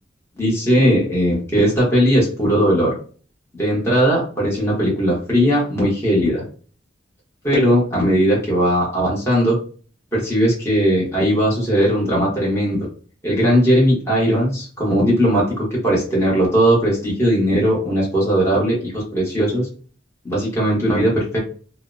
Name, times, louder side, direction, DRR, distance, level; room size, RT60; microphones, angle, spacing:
voice 1, 0.4-2.9 3.6-6.4 7.4-9.6 10.1-12.9 13.2-19.7 20.2-21.4, equal, 15° left, -5 dB, 1.0 m, -18 dB
2.7 x 2.0 x 2.5 m, 0.40 s
head